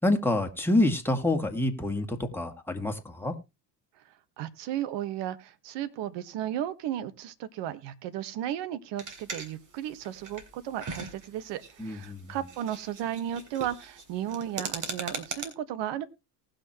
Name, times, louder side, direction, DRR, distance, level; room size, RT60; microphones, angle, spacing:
voice 1, 0.0-3.3 11.8-12.4, left 1 dB, 5° left, 4 dB, 2.3 m, -27 dB
voice 2, 4.4-16.0, right 11 dB, 60° right, 14 dB, 1.4 m, -34 dB
sound 1, 9.0-15.4, right 4 dB, 40° right, 3.3 m, -40 dB
19.0 x 6.4 x 3.0 m, 0.26 s
hypercardioid pair, 70°, 48 cm